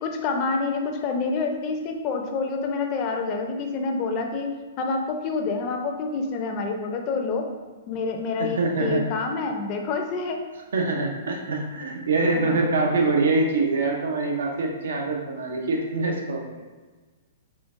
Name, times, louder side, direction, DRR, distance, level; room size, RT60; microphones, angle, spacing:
voice 1, 0.0-4.5 4.8-7.5 7.9-10.4 12.3-12.6, left 4 dB, 35° left, 3 dB, 0.5 m, -27 dB
voice 2, 8.4-9.0 10.7-16.6, right 3 dB, 75° right, 1 dB, 0.7 m, -24 dB
3.8 x 3.4 x 2.5 m, 1.3 s
hypercardioid pair, 130°, 0 cm